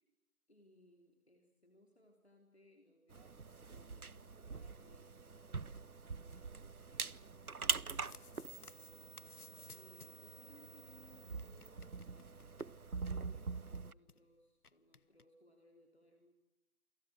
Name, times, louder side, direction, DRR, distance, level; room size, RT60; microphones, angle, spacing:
voice 1, 0.5-9.5 9.7-16.3, left 1 dB, 45° left, 3 dB, 3.4 m, -67 dB
sound 1, 3.1-13.9, right 4 dB, 80° right, 0.9 m, -44 dB
sound 2, 7.9-10.3 10.6-10.7 10.8-10.9 11.3-13.2 13.4-13.5 13.7-14.2 14.6-15.2, left 4 dB, 90° left, 0.9 m, -59 dB
28.5 x 24.5 x 6.3 m, 1.0 s
figure-of-eight pair, 175°, 43 cm